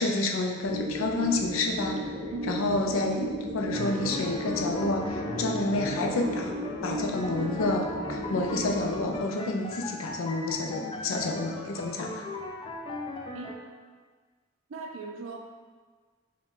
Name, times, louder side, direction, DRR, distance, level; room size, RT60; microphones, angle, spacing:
voice 1, 0.0-2.0 2.5-6.5 6.8-12.3, left 2 dB, 85° left, 2 dB, 0.5 m, -29 dB
sound 1, 0.6-9.2, equal, 5° right, 0.8 m, -35 dB
sound 2, 3.7-13.5, left 2 dB, 25° left, 0.3 m, -38 dB
voice 2, 13.3-13.8 14.7-15.4, right 4 dB, 70° right, 2 dB, 0.4 m, -39 dB
4.8 x 2.2 x 3.7 m, 1.5 s
head